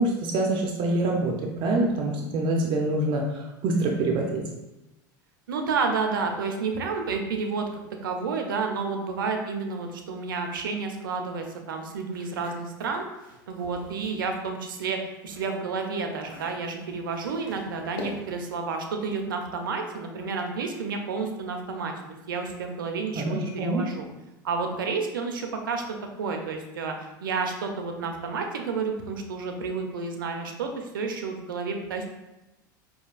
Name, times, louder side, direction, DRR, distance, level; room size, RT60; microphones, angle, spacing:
voice 1, 0.0-4.4 23.1-23.8, right 2 dB, 50° right, 1 dB, 0.6 m, -25 dB
voice 2, 5.5-13.1 13.5-21.9 22.3-24.1 24.4-25.8 26.2-27.0 27.2-32.1, right 4 dB, 85° right, 4 dB, 0.6 m, -30 dB
sound 1, 12.1-14.3 14.7-18.5, left 2 dB, 80° left, 0.9 m, -45 dB
5.3 x 2.7 x 2.4 m, 0.98 s
hypercardioid pair, 95°, 11 cm